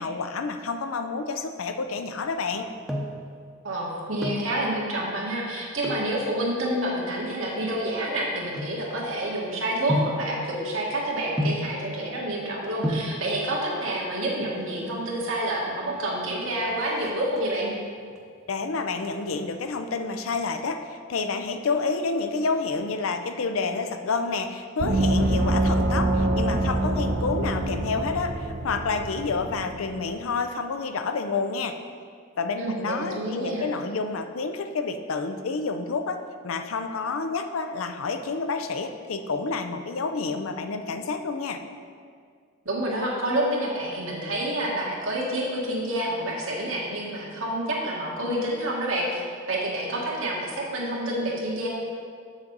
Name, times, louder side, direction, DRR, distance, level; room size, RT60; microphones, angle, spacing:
voice 1, 0.0-2.7 18.5-31.8 32.4-41.6, left 4 dB, 90° left, 7 dB, 0.5 m, -29 dB
sound 1, 2.5-3.3 4.0-4.5 5.8-6.2 6.9-9.3 9.9-10.3 11.4-11.8 12.5-12.6 12.8-13.2 14.3-14.8 15.1-15.2 15.5-15.6 16.0-16.4 16.7-17.7 18.2-18.6 18.9-20.1 20.4-20.5, left 1 dB, 5° right, 0.7 m, -31 dB
voice 2, 3.6-17.7 32.6-33.7 42.7-49.2 49.5-51.7, right 1 dB, 80° right, -3 dB, 1.6 m, -28 dB
Gong, 24.8-30.0, right 1 dB, 50° right, 0.5 m, -25 dB
7.3 x 6.2 x 3.9 m, 2.1 s
head